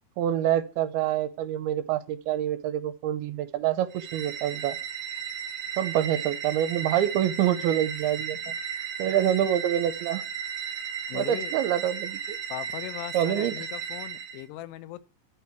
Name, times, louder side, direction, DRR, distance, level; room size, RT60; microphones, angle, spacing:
voice 1, 0.2-4.8 5.8-8.4 9.0-10.2 11.1-12.4 13.1-13.5, right 11 dB, 80° right, 2.4 m, -26 dB
sound 1, 3.9-14.4, right 7 dB, 60° right, 1.8 m, -35 dB
voice 2, 11.1-11.5 12.5-15.1, left 15 dB, 85° left, 2.8 m, -39 dB
11.0 x 4.9 x 8.1 m
omnidirectional pair, 4.8 m